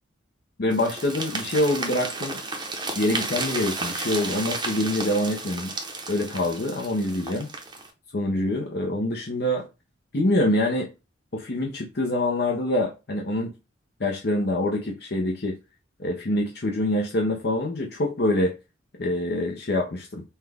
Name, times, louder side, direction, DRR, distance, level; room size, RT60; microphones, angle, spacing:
voice 1, 0.6-2.4 2.9-5.7 6.1-7.5 8.1-9.7 10.1-10.9 11.3-13.5 14.0-15.6 16.0-18.5 19.0-20.2, left 1 dB, 55° left, 0.7 m, -25 dB
sound 1, 0.7-7.9, right 3 dB, 20° right, 0.7 m, -33 dB
5.7 x 2.3 x 3.4 m
head